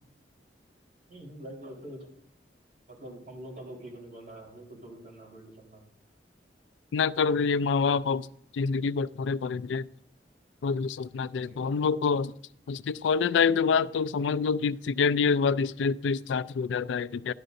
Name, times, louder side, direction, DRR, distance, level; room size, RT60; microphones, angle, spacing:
voice 1, 1.1-2.1 2.9-5.8 11.2-12.0, right 1 dB, 50° right, 4.0 m, -45 dB
voice 2, 6.9-8.3 8.5-9.9 10.6-12.3 12.7-17.3, left 5 dB, 90° left, 0.4 m, -26 dB
12.5 x 11.0 x 2.6 m
head